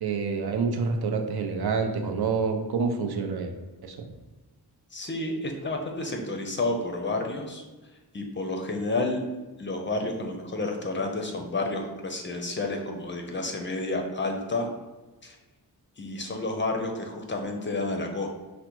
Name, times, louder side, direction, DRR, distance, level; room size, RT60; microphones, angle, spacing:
voice 1, 0.0-3.5 3.8-4.0, right 5 dB, 70° right, 4 dB, 0.6 m, -27 dB
voice 2, 4.9-7.6 8.1-9.2 9.6-14.7 15.2-15.3 16.0-18.3, left 2 dB, 30° left, 2 dB, 0.5 m, -30 dB
5.0 x 2.1 x 4.4 m, 1.2 s
wide cardioid pair, 165°, 39 cm